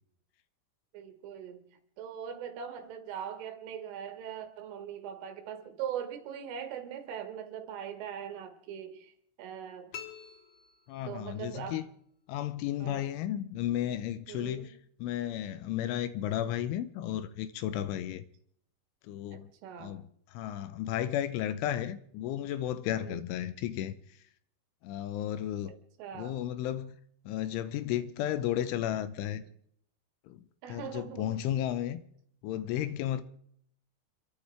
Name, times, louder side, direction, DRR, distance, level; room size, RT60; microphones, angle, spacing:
voice 1, 0.9-1.6 2.0-9.1 9.4-9.9 11.1-11.8 12.8-13.1 14.3-14.7 19.3-20.0 23.0-23.2 25.7-26.4 30.6-31.4, right 8 dB, 75° right, 4.2 m, -41 dB
sound 1, 9.9-11.5, left 9 dB, 60° left, 2.0 m, -47 dB
voice 2, 10.9-11.8 12.3-14.7 15.0-18.2 19.0-19.5 19.8-20.1 20.3-23.9 24.8-25.7 26.2-26.9 27.3-29.4 30.3-30.4 30.7-32.0 32.4-33.2, left 11 dB, 80° left, 3.1 m, -33 dB
27.0 x 13.5 x 3.4 m
omnidirectional pair, 5.8 m